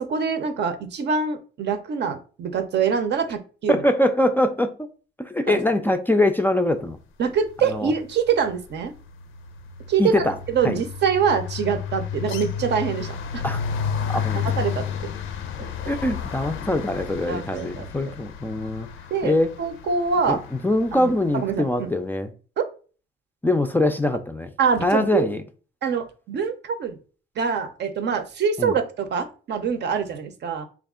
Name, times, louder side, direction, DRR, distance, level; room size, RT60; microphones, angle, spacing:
voice 1, 0.0-3.8 5.5-5.6 7.2-8.9 9.9-13.4 14.6-14.8 15.6-15.7 17.3-17.9 19.1-19.3 19.6-20.4 20.9-21.9 22.6-22.7 24.6-25.3 25.8-27.0 27.4-30.7, right 6 dB, 60° right, 0.6 m, -24 dB
voice 2, 3.7-4.7 5.2-7.0 7.6-7.9 10.0-10.4 10.6-10.8 13.4-13.6 14.1-14.4 15.9-18.9 19.2-19.5 20.3-22.3 23.4-24.5 24.8-25.4 28.6-28.8, left 1 dB, 10° left, 0.4 m, -23 dB
sound 1, 7.6-8.0 8.3-21.4, left 7 dB, 85° left, 0.5 m, -32 dB
3.4 x 2.4 x 3.6 m
cardioid pair, 90°, 20 cm